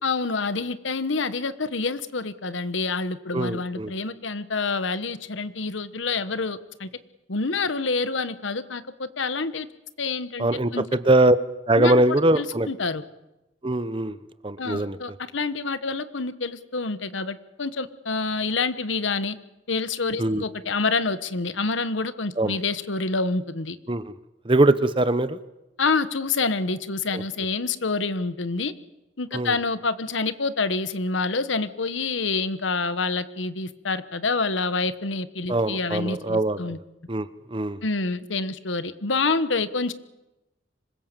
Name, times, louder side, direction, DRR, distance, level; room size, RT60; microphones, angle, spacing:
voice 1, 0.0-6.9 7.3-9.7 10.0-10.9 11.8-13.0 14.6-19.4 19.7-23.8 25.8-28.7 29.2-36.8 37.8-39.9, left 4 dB, 85° left, 13 dB, 1.2 m, -27 dB
voice 2, 3.3-3.9 10.4-11.4 11.7-12.7 13.6-14.2 14.4-15.0 20.2-20.4 22.4-22.6 23.9-24.1 24.4-25.4 27.1-27.2 29.3-29.5 35.5-36.7 37.1-37.8, right 1 dB, 25° right, 14 dB, 0.9 m, -22 dB
25.5 x 21.5 x 7.6 m, 0.97 s
head